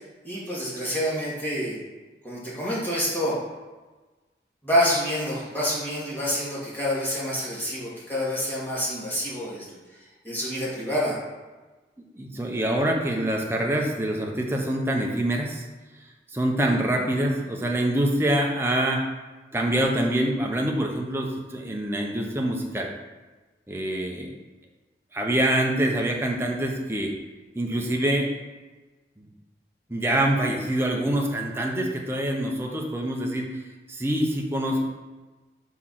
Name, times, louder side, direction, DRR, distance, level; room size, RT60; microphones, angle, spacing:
voice 1, 0.2-1.8 2.2-3.3 4.6-9.7 10.2-11.2, equal, 10° left, -8 dB, 2.2 m, -27 dB
voice 2, 12.0-15.6 16.3-19.1 19.5-22.9 23.7-24.4 25.1-27.1 27.5-28.3 29.2-29.3 29.9-33.6 33.9-34.8, right 1 dB, 15° right, 0 dB, 0.8 m, -25 dB
4.8 x 4.6 x 5.7 m, 1.2 s
head